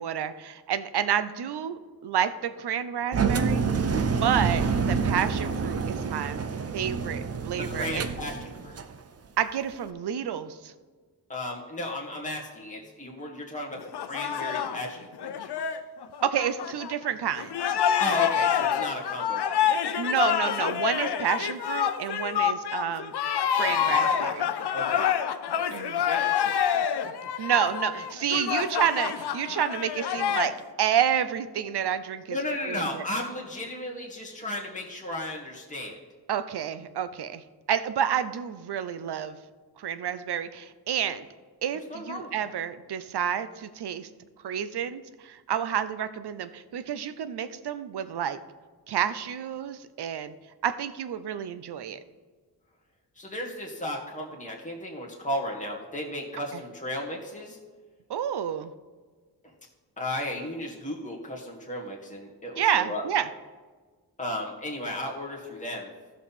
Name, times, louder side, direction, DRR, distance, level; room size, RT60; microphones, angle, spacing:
voice 1, 0.0-3.6 4.2-6.4 6.7-8.1 9.4-10.7 16.2-17.8 20.0-23.1 23.5-24.5 25.7-26.0 27.4-30.5 30.8-32.4 32.6-33.0 36.3-39.4 39.8-41.3 41.6-44.1 44.4-48.4 48.9-50.3 50.6-52.0 56.5-56.6 58.1-58.7 62.6-63.3, right 9 dB, 80° right, 13 dB, 0.6 m, -29 dB
Engine, 3.1-9.0, right 5 dB, 40° right, 0.6 m, -27 dB
voice 2, 7.6-8.8 11.3-15.7 18.0-19.8 24.7-25.1 25.5-26.6 32.3-36.0 41.9-42.5 53.2-57.6 60.0-63.0 64.2-65.9, left 1 dB, 20° left, -2 dB, 1.6 m, -35 dB
sound 1, 13.8-17.1 17.4-30.5, left 8 dB, 80° left, 0.7 m, -27 dB
15.0 x 5.6 x 4.2 m, 1.4 s
wide cardioid pair, 120°, 39 cm